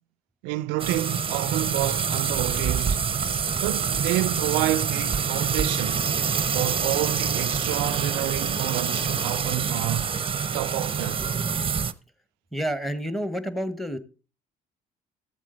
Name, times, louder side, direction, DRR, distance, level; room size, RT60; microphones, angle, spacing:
voice 1, 0.4-3.1 3.6-6.0 6.5-10.1 10.5-11.2, right 18 dB, 80° right, 0.4 m, -29 dB
sound 1, 0.8-11.9, right 6 dB, 30° right, 0.7 m, -26 dB
voice 2, 12.5-14.0, equal, ahead, 1.3 m, -29 dB
13.5 x 7.4 x 3.9 m
hypercardioid pair, 60°, 18 cm